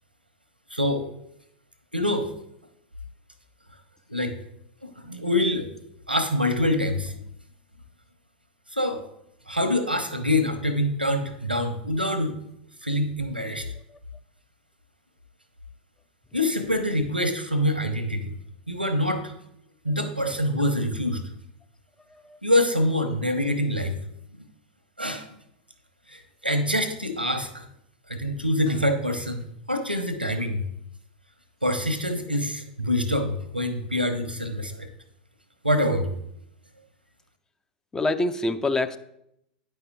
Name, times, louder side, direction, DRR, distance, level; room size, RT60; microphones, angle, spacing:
voice 1, 0.7-1.1 1.9-2.3 4.1-4.4 4.8-5.7 6.1-7.1 8.7-9.0 9.5-12.3 12.8-13.7 16.3-18.3 18.7-19.3 19.8-21.2 22.4-24.0 25.0-25.3 26.1-27.7 28.1-30.7 31.6-34.9 35.6-36.1, left 1 dB, 90° right, 8 dB, 1.0 m, -25 dB
voice 2, 37.9-39.0, left 2 dB, 10° left, 11 dB, 0.4 m, -26 dB
9.7 x 5.5 x 3.7 m, 0.78 s
figure-of-eight pair, 95°, 5 cm